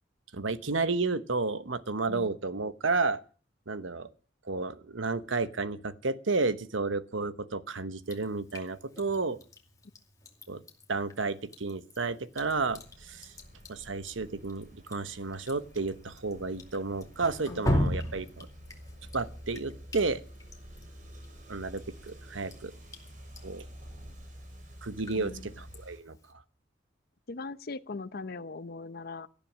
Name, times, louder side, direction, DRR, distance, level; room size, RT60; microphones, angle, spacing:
voice 1, 0.3-3.2 3.7-4.1 4.5-9.4 10.5-10.6 10.9-13.3 13.7-18.5 19.1-20.2 21.5-22.7 23.4-23.6 24.8-26.2, right 3 dB, 90° right, 13 dB, 1.1 m, -32 dB
voice 2, 2.1-2.4 17.5-17.9 25.1-25.6 27.3-29.3, left 3 dB, 55° left, 13 dB, 0.8 m, -40 dB
Drip, 8.0-26.3, left 1 dB, 20° left, 2.4 m, -39 dB
sound 1, 12.4-26.0, equal, 45° right, 3.5 m, -50 dB
18.0 x 12.5 x 6.2 m, 0.41 s
head